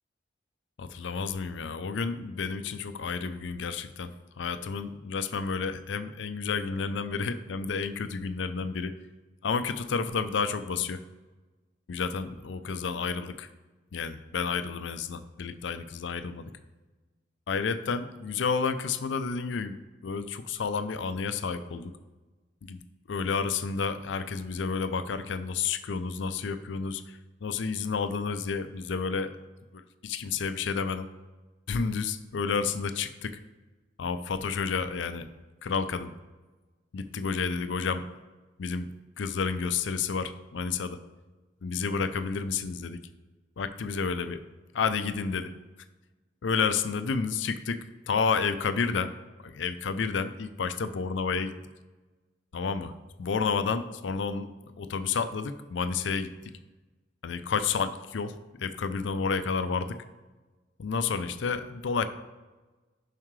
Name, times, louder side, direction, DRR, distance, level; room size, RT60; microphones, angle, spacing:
voice 1, 0.8-4.1 4.4-8.9 9.4-11.0 11.9-13.5 13.9-16.5 17.5-19.8 20.0-21.9 22.6-22.8 23.1-29.3 29.7-31.1 31.7-33.4 34.0-35.3 35.6-36.1 36.9-38.0 38.6-38.9 39.2-41.0 41.6-43.0 43.6-44.4 44.7-45.5 46.4-49.1 49.4-51.5 52.5-52.9 53.2-54.5 54.8-56.3 57.2-60.0 60.8-62.1, left 5 dB, 80° left, 11 dB, 0.5 m, -30 dB
7.3 x 5.6 x 3.2 m, 1.2 s
head